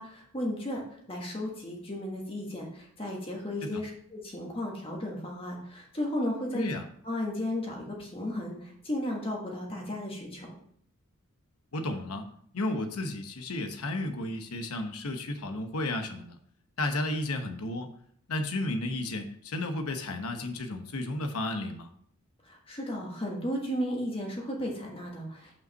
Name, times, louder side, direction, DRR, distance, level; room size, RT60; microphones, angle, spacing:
voice 1, 0.0-6.6 7.0-10.5 22.4-25.6, left 1 dB, 25° left, -1 dB, 1.5 m, -34 dB
voice 2, 6.5-6.8 11.7-12.3 12.5-16.4 16.8-17.9 18.3-21.9, left 2 dB, 75° left, 6 dB, 1.0 m, -33 dB
5.7 x 5.2 x 6.4 m, 0.63 s
head